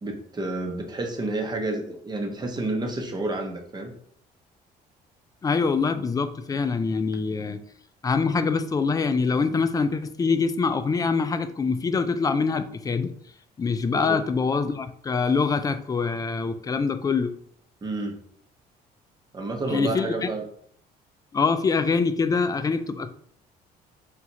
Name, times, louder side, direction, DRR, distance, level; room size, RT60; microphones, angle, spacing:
voice 1, 0.0-3.9 13.9-14.2 17.8-18.2 19.3-20.4, right 2 dB, 25° right, 3 dB, 0.9 m, -30 dB
voice 2, 5.4-7.6 8.0-13.1 13.6-17.3 19.7-20.3 21.3-23.1, left 4 dB, 20° left, 11 dB, 0.3 m, -24 dB
4.5 x 2.4 x 4.0 m, 0.64 s
cardioid pair, 110°, 17 cm